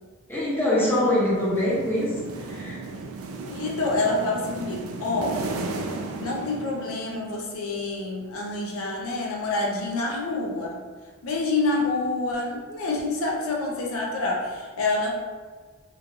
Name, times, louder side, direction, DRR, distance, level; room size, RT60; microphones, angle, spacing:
voice 1, 0.3-2.1 2.4-2.8, left 1 dB, 10° left, -8 dB, 0.7 m, -23 dB
sound 1, 0.8-7.3, right 3 dB, 75° right, 0.3 m, -35 dB
voice 2, 3.5-5.4 6.2-10.8 11.2-15.1, left 2 dB, 70° left, -1 dB, 0.4 m, -27 dB
3.1 x 2.3 x 2.4 m, 1.4 s
head